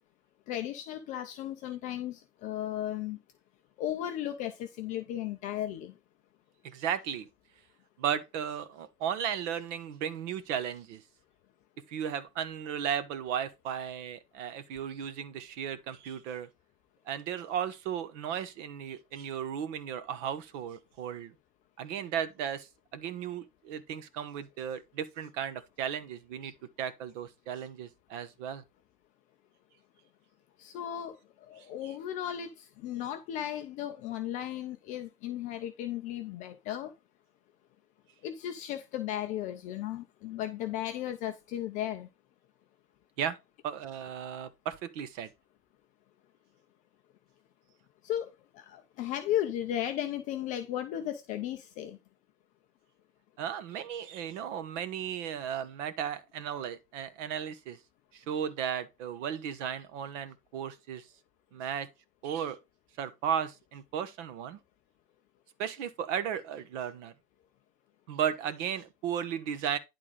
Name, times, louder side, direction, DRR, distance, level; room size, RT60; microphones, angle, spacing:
voice 1, 0.5-3.2 3.8-5.9 30.6-36.9 38.2-42.1 48.0-52.0, left 11 dB, 15° left, 0.4 m, -35 dB
voice 2, 6.6-7.3 8.0-11.0 11.9-16.5 17.1-21.3 21.8-28.6 31.8-31.9 43.2-43.4 43.6-45.3 53.4-57.8 58.1-61.1 61.5-61.9 62.2-62.6 63.0-64.6 65.6-67.1 68.1-69.8, right 8 dB, 50° right, 1.5 m, -35 dB
11.0 x 3.7 x 5.0 m
hypercardioid pair, 110°, 48 cm